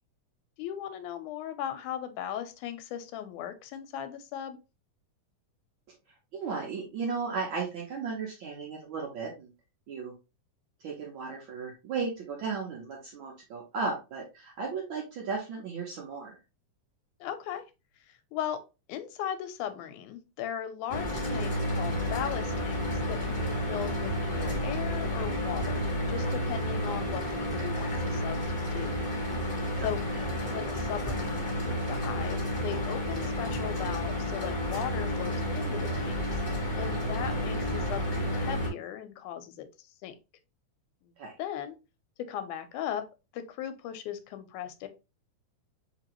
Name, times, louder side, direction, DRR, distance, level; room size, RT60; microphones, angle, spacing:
voice 1, 0.6-4.6 17.2-17.6 18.1-18.6 18.9-25.8 26.1-28.4 28.7-29.0 29.8-30.0 30.5-36.4 36.8-40.2 41.4-41.7 42.2-43.1 43.3-44.9, left 10 dB, 85° left, 9 dB, 2.1 m, -38 dB
voice 2, 6.3-9.5 9.9-10.1 10.8-16.4 30.2-30.3 41.2-41.4, right 4 dB, 80° right, -2 dB, 1.1 m, -35 dB
Mechanical fan, 20.9-38.7, equal, 40° left, 0.7 m, -31 dB
4.3 x 2.9 x 2.9 m, 0.27 s
omnidirectional pair, 3.4 m